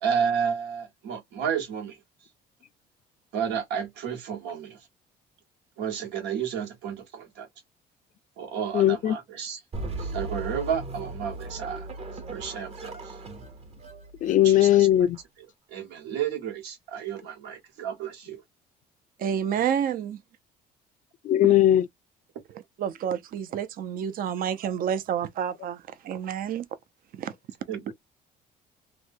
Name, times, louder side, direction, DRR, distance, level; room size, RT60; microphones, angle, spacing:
voice 1, 0.0-2.0 3.3-4.8 5.8-7.5 8.4-9.6 10.0-11.9 12.3-13.2 14.4-14.9 15.7-18.4 21.4-21.5 27.7-27.9, right 7 dB, 90° right, 1.3 m, -31 dB
voice 2, 8.7-9.2 14.2-15.2 21.2-21.9, left 12 dB, 50° left, 0.4 m, -19 dB
sound 1, 9.7-15.2, right 2 dB, 35° right, 0.9 m, -38 dB
voice 3, 19.2-20.2 22.8-26.7 27.1-27.3, right 9 dB, 60° right, 0.6 m, -29 dB
3.1 x 2.2 x 2.6 m
cardioid pair, 110°, 17 cm